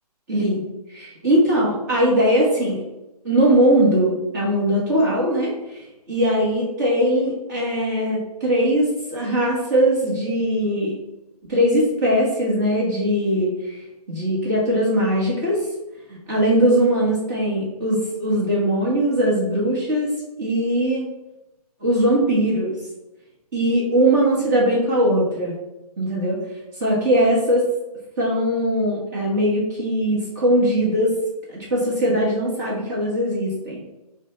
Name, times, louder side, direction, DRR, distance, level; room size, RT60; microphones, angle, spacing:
voice 1, 0.3-0.6 0.9-2.8 3.2-10.9 11.5-13.8 14.1-15.6 16.1-20.1 20.4-21.1 21.8-22.8 23.5-25.5 26.0-26.4 26.8-27.7 28.2-31.1 31.5-33.8, right 1 dB, 30° right, -6 dB, 1.3 m, -20 dB
5.6 x 2.2 x 4.2 m, 0.96 s
hypercardioid pair, 160°, 20 cm